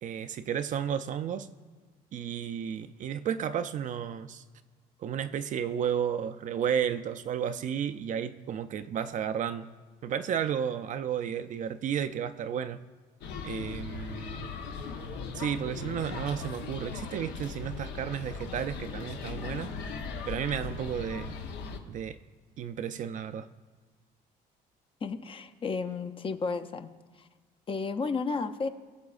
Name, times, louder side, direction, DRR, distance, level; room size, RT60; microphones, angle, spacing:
voice 1, 0.0-1.5 2.1-4.4 5.0-9.7 10.0-12.8 13.4-14.5 15.3-19.7 20.3-21.3 21.9-22.2 22.6-23.5, right 8 dB, 50° right, 11 dB, 0.4 m, -32 dB
sound 1, 13.2-21.8, left 5 dB, 85° left, 0.9 m, -38 dB
voice 2, 25.0-26.9 27.2-27.3 27.7-28.7, left 4 dB, 30° left, 9 dB, 0.5 m, -32 dB
20.5 x 6.9 x 2.4 m, 1.4 s
cardioid pair, 110°, 17 cm